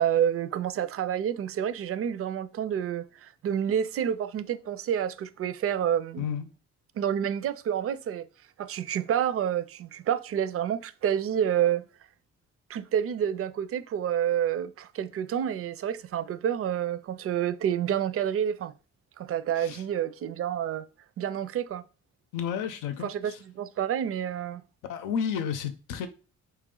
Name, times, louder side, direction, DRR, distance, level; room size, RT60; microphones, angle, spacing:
voice 1, 0.0-6.3 7.0-8.3 8.6-11.9 12.7-18.7 19.2-20.9 21.2-21.9 23.0-24.6, right 9 dB, 50° right, 0.4 m, -28 dB
voice 2, 22.3-23.4 24.9-26.1, left 7 dB, 85° left, 0.7 m, -32 dB
4.2 x 3.1 x 3.7 m
cardioid pair, 90°, 30 cm